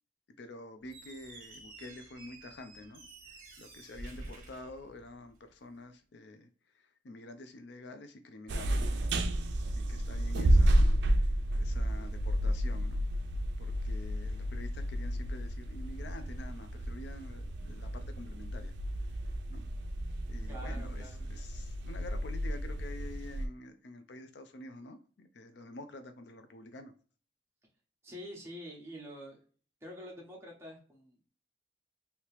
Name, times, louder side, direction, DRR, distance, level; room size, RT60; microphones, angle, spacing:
voice 1, 0.4-3.1 3.6-6.5 7.0-9.0 9.8-10.9 11.6-13.0 13.6-18.7 19.5-19.6 20.3-26.9, left 2 dB, 65° left, 0.4 m, -48 dB
Squeak, 0.8-5.5, right 2 dB, 50° right, 1.0 m, -50 dB
sound 1, 8.5-23.5, right 1 dB, 65° right, 0.4 m, -31 dB
voice 2, 20.4-21.2 28.0-29.4 29.8-31.3, equal, 15° right, 0.9 m, -47 dB
2.9 x 2.8 x 3.1 m
head